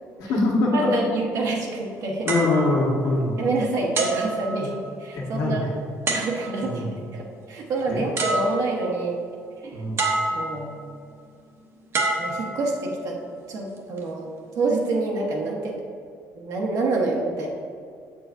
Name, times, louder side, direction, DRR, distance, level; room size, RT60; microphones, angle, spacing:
voice 1, 0.2-0.9 2.2-3.4 5.2-5.7 6.6-6.9 7.9-8.0 9.7-10.0, left 2 dB, 80° left, -2 dB, 1.5 m, -23 dB
voice 2, 0.7-2.3 3.4-5.6 6.1-6.9 7.1-9.2 9.6-9.9 10.2-10.8 12.2-13.2 13.5-14.3 14.5-15.8 16.4-17.5, right 3 dB, 70° right, -1 dB, 1.2 m, -27 dB
sound 1, 2.3-3.5 3.9-5.1 6.1-6.8 7.8-7.9 8.2-9.0 10.0-10.8 11.9-13.0 13.8-14.0, right 3 dB, 45° right, 1.0 m, -28 dB
7.2 x 6.8 x 2.7 m, 2.3 s
cardioid pair, 125°, 6 cm